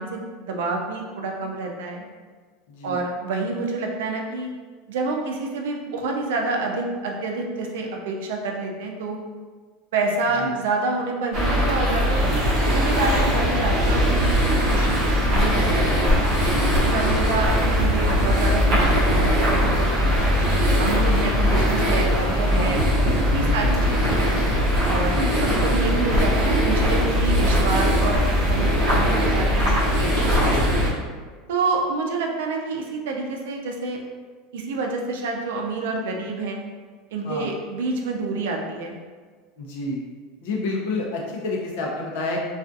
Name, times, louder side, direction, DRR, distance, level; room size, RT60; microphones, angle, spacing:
voice 1, 0.0-2.0 2.8-4.5 4.9-9.2 9.9-16.2 16.9-20.1 20.8-22.8 23.2-24.3 24.9-25.1 25.4-28.2 28.5-30.8 31.5-34.0 34.5-36.6 37.1-39.0, right 3 dB, 85° right, 1 dB, 0.4 m, -28 dB
voice 2, 2.7-3.0 10.4-10.6 16.4-16.8 22.5-22.8 23.3-23.7 25.0-25.3 30.4-30.7 37.2-37.5 39.6-40.0 40.4-42.4, left 2 dB, 60° left, -2 dB, 0.6 m, -30 dB
sound 1, 11.3-30.9, equal, 35° right, 0.7 m, -20 dB
2.4 x 2.4 x 2.5 m, 1.5 s
supercardioid pair, 175°, 0 cm